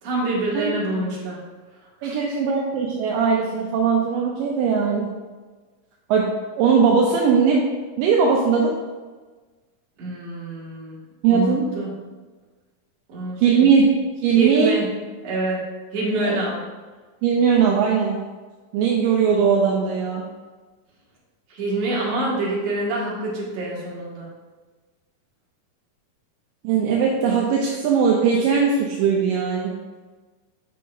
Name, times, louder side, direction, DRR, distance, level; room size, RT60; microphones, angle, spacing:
voice 1, 0.0-1.4 2.0-2.2 10.0-11.0 11.3-12.0 13.1-13.7 14.3-14.9 15.2-15.7 15.9-16.6 21.5-24.3, right 2 dB, 50° right, -6 dB, 2.4 m, -26 dB
voice 2, 2.0-5.1 6.1-6.3 6.6-7.6 8.0-8.7 11.2-11.6 13.4-13.9 14.2-14.8 16.2-16.4 17.2-18.2 18.7-20.3 26.6-29.8, right 6 dB, 80° right, -1 dB, 2.1 m, -19 dB
8.4 x 5.4 x 2.6 m, 1.3 s
omnidirectional pair, 4.3 m